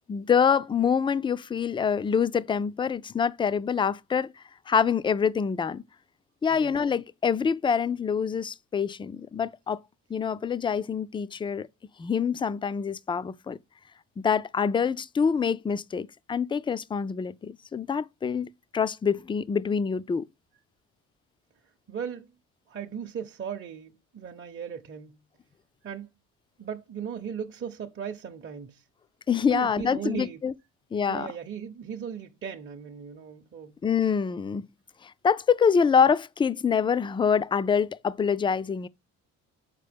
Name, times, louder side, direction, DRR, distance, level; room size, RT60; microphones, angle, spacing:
voice 1, 0.1-4.3 4.7-5.8 6.4-9.8 10.1-11.7 12.0-13.6 14.2-20.3 29.3-30.5 30.9-31.3 33.8-34.6 35.0-38.9, left 6 dB, 15° left, 0.3 m, -25 dB
voice 2, 21.9-22.3 22.7-25.2 25.8-26.1 26.6-28.8 29.5-30.4 31.1-33.8, right 7 dB, 35° right, 0.8 m, -37 dB
6.7 x 4.6 x 3.4 m
cardioid pair, 90°, 33 cm